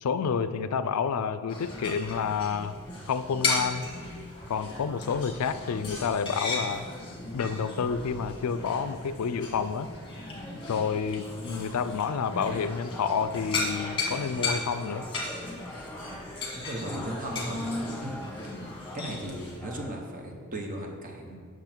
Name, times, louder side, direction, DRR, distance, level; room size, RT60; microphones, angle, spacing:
voice 1, 0.0-2.7 3.1-3.8 4.5-6.9 7.3-9.9 10.7-15.1, left 6 dB, 80° left, 12 dB, 0.4 m, -29 dB
sound 1, 1.5-19.6, left 3 dB, 25° left, 1.3 m, -36 dB
sound 2, 11.9-19.9, left 1 dB, 5° left, 0.5 m, -45 dB
voice 2, 16.5-17.7 18.0-18.2 18.7-21.4, right 1 dB, 35° right, 2 dB, 0.9 m, -37 dB
7.7 x 6.2 x 4.5 m, 2.1 s
head